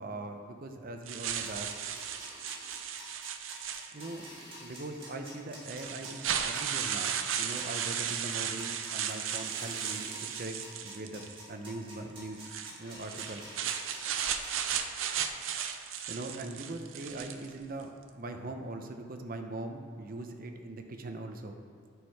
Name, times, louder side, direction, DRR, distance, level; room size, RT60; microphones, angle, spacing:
voice 1, 0.0-1.7 3.9-4.3 4.6-10.6 10.8-12.5 12.8-13.5 16.1-21.7, right 2 dB, 45° right, 5 dB, 0.7 m, -41 dB
sound 1, 1.1-4.2 5.1-5.2 5.6-11.4 12.3-17.5, right 8 dB, 90° right, 0.6 m, -35 dB
sound 2, 1.4-14.8, right 1 dB, 25° right, 2.3 m, -48 dB
9.2 x 6.5 x 4.7 m, 2.4 s
head